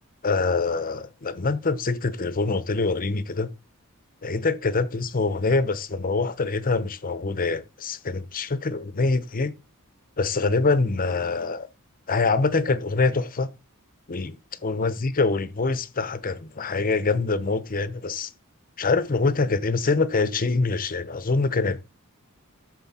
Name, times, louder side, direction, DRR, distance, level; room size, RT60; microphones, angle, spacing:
voice 1, 0.2-3.5 4.2-9.5 10.2-11.7 12.1-13.5 14.1-14.4 14.6-18.3 18.8-22.0, left 3 dB, 40° left, 0.8 m, -25 dB
13.0 x 4.4 x 4.3 m
head